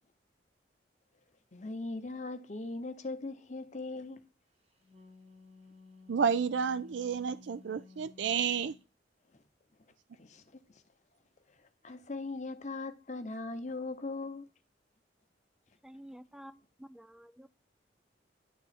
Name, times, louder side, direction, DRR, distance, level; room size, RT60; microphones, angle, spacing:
voice 1, 1.5-4.3 9.3-9.4 10.1-10.8 11.5-14.5, left 3 dB, 40° left, 0.8 m, -40 dB
Wind instrument woodwind instrument, 4.6-8.8, left 4 dB, 35° right, 0.9 m, -56 dB
voice 2, 6.1-8.8, right 6 dB, 80° right, 0.4 m, -31 dB
voice 3, 15.8-17.5, equal, 5° right, 0.4 m, -51 dB
11.0 x 3.7 x 4.1 m
head